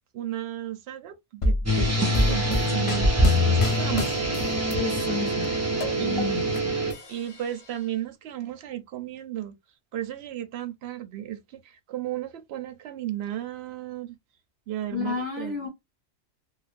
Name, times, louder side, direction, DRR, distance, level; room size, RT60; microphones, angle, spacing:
voice 1, 0.1-3.1 3.5-4.2 6.0-6.4 7.1-9.6 9.9-14.2 14.7-15.7, right 12 dB, 70° right, 0.8 m, -34 dB
sound 1, 1.4-4.7 5.1-6.6 6.9-7.8, left 1 dB, 45° left, 0.4 m, -29 dB
sound 2, 1.6-6.9, equal, 20° right, 0.4 m, -24 dB
voice 2, 4.7-5.5 5.9-6.4 14.9-15.7, left 5 dB, 60° left, 1.7 m, -31 dB
3.2 x 2.0 x 2.4 m
omnidirectional pair, 1.2 m